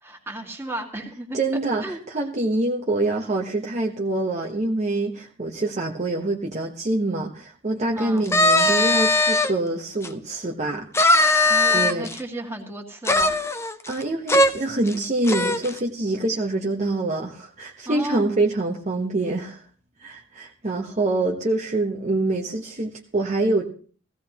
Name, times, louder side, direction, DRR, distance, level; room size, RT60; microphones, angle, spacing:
voice 1, 0.0-1.4 1.8-2.0 8.0-8.3 11.4-13.3 17.9-18.4, right 1 dB, 15° right, 1 dB, 2.1 m, -33 dB
voice 2, 1.3-10.9 11.7-12.1 13.9-19.6 20.0-23.6, right 2 dB, 35° right, 0 dB, 1.1 m, -25 dB
sound 1, 8.3-9.5 10.0-10.1 10.9-12.2 13.0-14.0 14.3-14.5 14.9-15.0 15.3-15.7, left 2 dB, 15° left, 0.7 m, -19 dB
16.5 x 16.0 x 3.0 m, 0.41 s
head